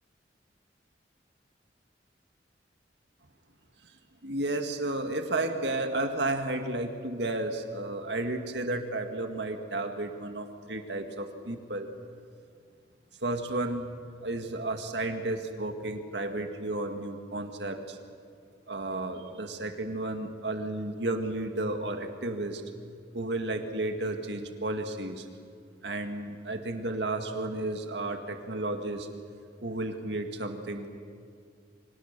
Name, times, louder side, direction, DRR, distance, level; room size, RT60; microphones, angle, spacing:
voice 1, 3.8-11.9 13.2-18.0 18.7-22.6 23.1-25.3 25.8-29.1 29.6-31.0, right 2 dB, 65° right, 5 dB, 2.1 m, -33 dB
29.5 x 25.0 x 6.9 m, 2.2 s
head